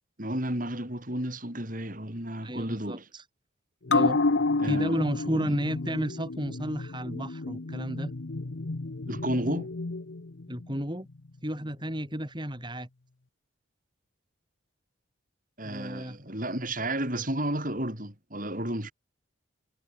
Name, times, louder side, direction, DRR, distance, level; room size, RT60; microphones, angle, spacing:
voice 1, 0.2-3.0 4.6-5.0 5.3-5.5 9.1-9.7 15.6-18.9, right 1 dB, 40° right, 5.9 m, -32 dB
voice 2, 2.4-3.2 3.9-4.2 4.6-8.1 10.5-11.1 11.4-12.9 15.6-16.2, equal, 20° right, 4.1 m, -32 dB
sound 1, 3.9-10.8 11.1-11.2, left 3 dB, 65° left, 0.9 m, -30 dB
head